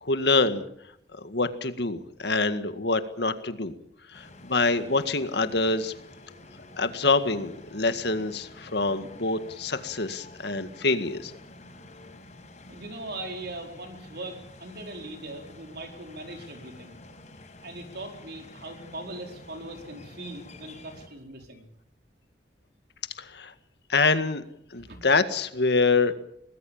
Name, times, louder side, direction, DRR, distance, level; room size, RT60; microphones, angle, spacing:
voice 1, 0.0-0.6 1.2-3.7 4.1-5.9 6.8-11.3 23.2-23.5 23.9-24.4 24.7-26.1, left 3 dB, 65° left, 9 dB, 1.9 m, -25 dB
sound 1, 4.1-21.1, left 2 dB, 40° left, 5.8 m, -49 dB
voice 2, 12.7-17.0 17.6-21.7 24.8-25.0, right 2 dB, 60° right, 4 dB, 4.6 m, -40 dB
25.0 x 20.0 x 7.3 m, 0.70 s
head